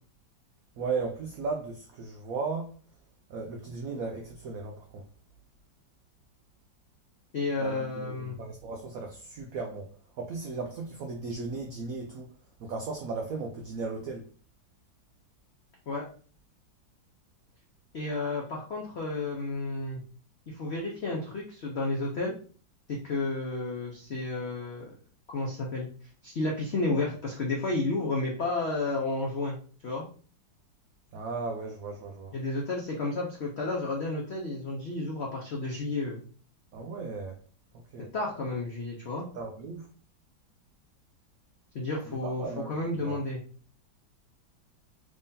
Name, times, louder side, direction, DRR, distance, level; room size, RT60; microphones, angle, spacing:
voice 1, 0.8-2.7 3.3-5.0 7.6-12.3 12.6-14.3 31.1-32.3 36.7-37.4 37.9-38.1 39.3-39.9 42.1-43.2, right 4 dB, 80° right, 0.8 m, -36 dB
voice 2, 7.3-8.4 15.9-16.1 17.9-20.0 20.5-22.3 22.9-24.9 25.3-25.9 26.2-29.6 29.8-30.0 32.3-36.2 38.1-39.2 41.7-43.4, left 2 dB, 80° left, 0.5 m, -31 dB
3.7 x 3.3 x 2.6 m
omnidirectional pair, 2.1 m